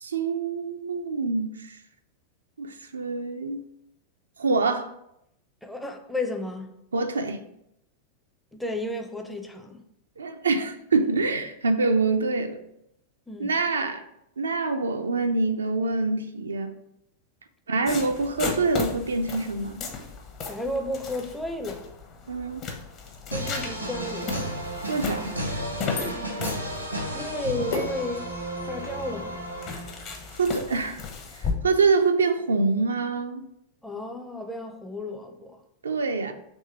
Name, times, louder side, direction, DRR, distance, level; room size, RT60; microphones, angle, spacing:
voice 1, 0.0-1.8 2.6-3.6 4.4-4.9 6.9-7.4 10.2-12.6 13.4-14.0 14.4-16.7 17.7-19.8 22.3-22.6 24.9-25.3 30.4-31.0 31.4-33.4 35.8-36.3, right 3 dB, 70° right, 0.3 m, -25 dB
voice 2, 5.6-6.7 8.5-9.8 13.3-13.5 20.5-21.9 23.3-24.5 27.1-28.3 28.7-29.4 33.8-35.6, left 1 dB, 5° left, 0.5 m, -33 dB
sound 1, 17.9-31.5, left 5 dB, 35° left, 0.8 m, -36 dB
sound 2, 23.3-30.3, right 1 dB, 90° right, 0.8 m, -33 dB
sound 3, 25.9-31.7, left 3 dB, 60° left, 1.0 m, -40 dB
3.6 x 3.2 x 4.2 m
figure-of-eight pair, 90°, 0 cm